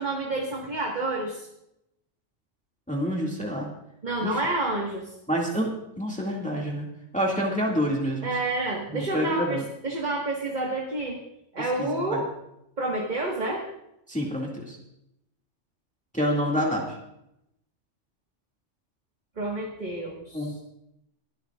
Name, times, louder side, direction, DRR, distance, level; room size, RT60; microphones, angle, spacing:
voice 1, 0.0-1.5 4.0-5.1 8.2-11.2 11.5-12.3 12.8-13.7 19.4-20.5, right 2 dB, 40° right, -1 dB, 1.7 m, -29 dB
voice 2, 2.9-3.7 4.2-4.4 5.3-6.9 7.1-8.3 8.9-9.6 11.8-12.2 14.1-14.8 16.1-17.0 20.3-20.6, equal, 5° left, -2 dB, 2.1 m, -27 dB
22.5 x 12.0 x 2.4 m, 0.82 s
omnidirectional pair, 1.2 m